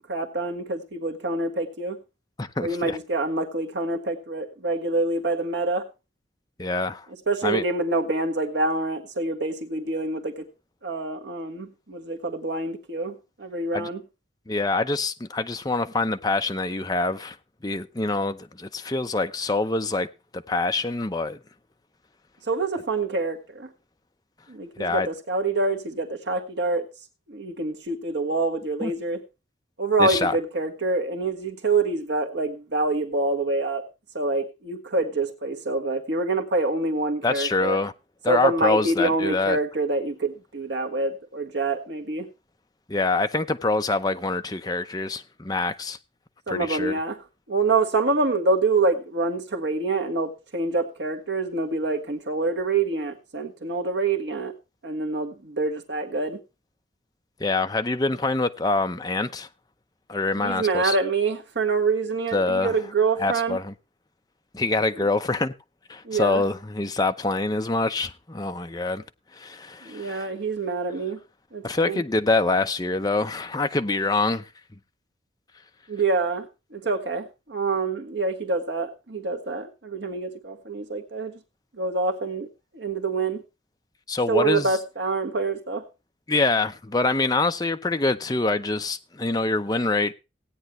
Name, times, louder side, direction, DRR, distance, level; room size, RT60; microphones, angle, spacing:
voice 1, 0.1-2.0 2.6-5.9 7.3-10.5 10.8-14.0 22.5-23.7 24.5-26.9 27.3-29.2 29.8-33.9 34.1-37.8 38.3-42.3 46.5-47.2 47.5-54.5 54.8-56.4 60.4-63.6 64.9-65.0 66.0-66.4 69.8-71.2 71.5-72.0 75.9-81.4 81.8-82.5 82.7-83.4 84.3-85.8, right 3 dB, 75° right, 1.5 m, -26 dB
voice 2, 2.4-3.0 6.6-7.1 7.4-7.6 13.7-13.9 14.5-17.4 17.6-20.1 20.3-21.4 24.8-25.1 28.8-28.9 30.0-30.4 37.2-37.9 38.2-39.6 42.9-46.0 46.5-47.0 57.4-59.5 60.1-61.0 62.3-62.7 63.2-63.7 64.5-65.5 65.9-69.0 69.3-70.3 71.6-74.5 84.1-84.7 86.3-90.1, left 3 dB, 20° left, 0.7 m, -25 dB
17.0 x 9.2 x 3.1 m
head